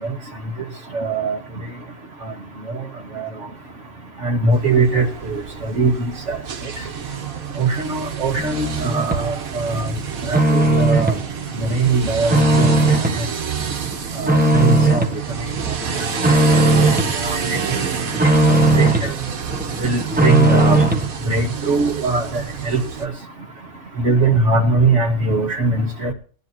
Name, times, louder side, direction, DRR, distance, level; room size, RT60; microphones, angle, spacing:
voice 1, 0.9-1.4 4.2-5.4 5.8-5.9 6.3-6.4 7.6-9.9 10.3-11.1 11.7-12.7 14.2-15.0 17.2-17.4 17.7-17.8 18.8-18.9 19.8-20.9 21.3-22.3 22.7-22.8 24.0-26.1, right 3 dB, 55° right, 3 dB, 2.2 m, -20 dB
sound 1, 4.5-23.1, right 7 dB, 85° right, 1.7 m, -29 dB
sound 2, 8.4-9.2 9.7-11.2 11.6-13.2 13.6-15.2 15.6-17.2 17.5-19.1 19.5-21.1, right 2 dB, 5° right, 1.3 m, -18 dB
20.5 x 10.5 x 2.9 m, 0.43 s
omnidirectional pair, 1.4 m